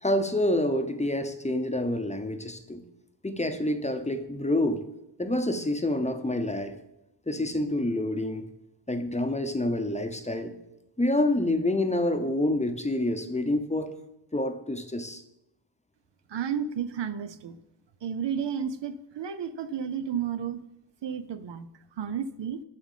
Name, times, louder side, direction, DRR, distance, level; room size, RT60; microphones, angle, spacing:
voice 1, 0.0-2.8 3.2-4.8 5.2-6.7 7.3-8.5 8.9-10.5 11.0-13.9 14.3-15.2, left 1 dB, 15° left, 7 dB, 0.7 m, -27 dB
voice 2, 16.3-17.6 18.0-20.6 21.0-21.7 22.0-22.6, right 7 dB, 65° right, 12 dB, 0.6 m, -32 dB
7.5 x 6.1 x 7.3 m, 0.87 s
wide cardioid pair, 105°, 46 cm